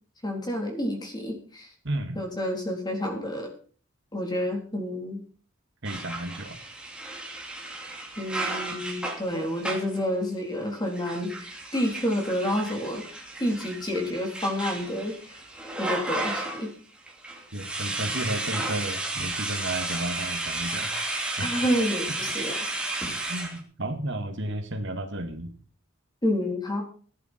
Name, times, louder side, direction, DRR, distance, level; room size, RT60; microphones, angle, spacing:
voice 1, 0.2-1.7 2.1-3.5 4.1-5.2 8.2-15.4 15.8-16.7 21.4-22.7 26.2-26.8, equal, 20° left, 1 dB, 3.8 m, -29 dB
voice 2, 1.8-2.2 5.8-6.6 17.5-20.9 21.4-21.5 23.3-25.5, right 1 dB, 55° right, 5 dB, 2.2 m, -32 dB
sound 1, 5.8-10.0 10.9-16.7 17.1-23.6, right 2 dB, 5° right, 2.7 m, -33 dB
17.0 x 10.5 x 4.5 m, 0.43 s
head